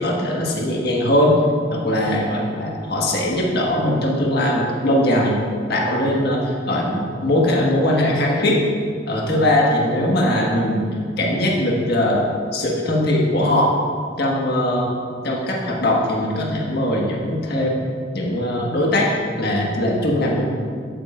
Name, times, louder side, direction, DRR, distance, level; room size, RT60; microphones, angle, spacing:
voice 1, 0.0-1.4 1.7-5.4 5.7-8.6 9.1-10.8 11.2-12.3 12.5-13.8 14.2-14.9 15.2-17.8 18.1-19.1 19.4-20.5, left 1 dB, 55° left, -2 dB, 1.6 m, -20 dB
11.0 x 8.7 x 2.5 m, 2.1 s
head